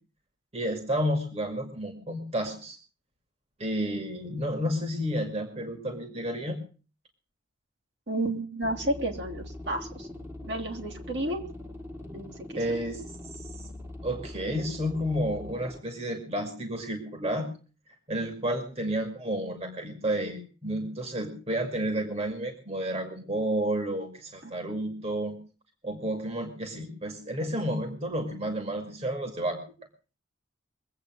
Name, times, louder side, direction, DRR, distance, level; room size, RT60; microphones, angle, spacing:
voice 1, 0.5-2.8 3.6-6.6 12.5-13.0 13.3-13.6 14.0-17.5 18.1-25.4 25.8-29.6, right 1 dB, 30° right, 4 dB, 2.3 m, -31 dB
voice 2, 8.1-10.1 10.4-11.4 12.1-12.6 24.4-24.5, right 1 dB, 60° right, 1 dB, 3.1 m, -31 dB
sound 1, 8.6-15.8, left 1 dB, 15° right, 1.6 m, -42 dB
22.5 x 8.4 x 6.3 m, 0.38 s
head